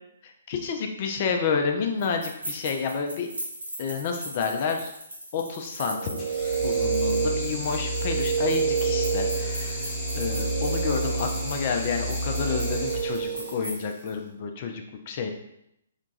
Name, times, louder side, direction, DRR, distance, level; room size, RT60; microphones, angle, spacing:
voice 1, 0.2-3.3 3.8-4.9 5.3-6.2 6.6-15.3, left 5 dB, 45° left, 4 dB, 0.4 m, -30 dB
sound 1, 2.0-14.1, right 1 dB, 80° right, 1.0 m, -40 dB
sound 2, 5.8-13.7, right 7 dB, 60° right, 0.3 m, -30 dB
sound 3, 6.2-13.8, equal, 20° left, 1.0 m, -31 dB
2.9 x 2.3 x 3.9 m, 0.78 s
figure-of-eight pair, 130°, 0 cm